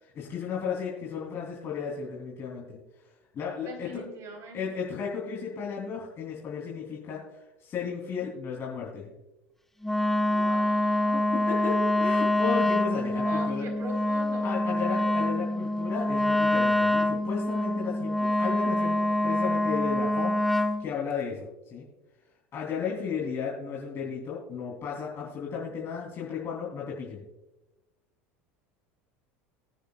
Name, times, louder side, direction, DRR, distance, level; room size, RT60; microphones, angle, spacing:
voice 1, 0.0-2.8 3.3-3.9 4.5-9.1 11.1-13.7 14.4-21.9 22.5-27.3, left 6 dB, 40° left, -4 dB, 3.5 m, -34 dB
voice 2, 3.7-4.7 10.3-11.4 13.2-14.5, right 2 dB, 50° right, 3 dB, 4.2 m, -42 dB
Wind instrument woodwind instrument, 9.8-20.8, left 1 dB, 5° left, 0.8 m, -25 dB
20.5 x 9.3 x 2.5 m, 1.0 s
hypercardioid pair, 90°, 7 cm